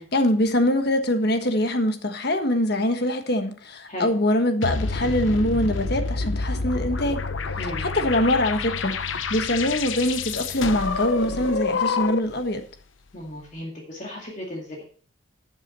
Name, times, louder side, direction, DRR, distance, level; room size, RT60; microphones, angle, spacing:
voice 1, 0.0-7.2 7.8-12.7, left 1 dB, 55° left, 1.4 m, -23 dB
sound 1, 4.6-12.4, left 4 dB, 80° left, 0.9 m, -28 dB
voice 2, 7.6-7.9 13.1-14.8, equal, 40° left, 2.3 m, -35 dB
13.0 x 7.5 x 4.1 m
head